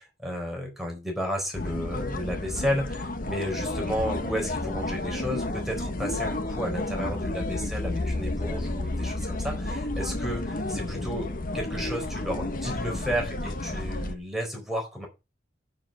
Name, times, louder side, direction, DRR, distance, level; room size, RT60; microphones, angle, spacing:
voice 1, 0.0-15.1, equal, ahead, 1 dB, 4.0 m, -33 dB
sound 1, 1.5-14.1, left 2 dB, 45° left, 1.3 m, -31 dB
7.9 x 7.3 x 6.3 m, 0.26 s
head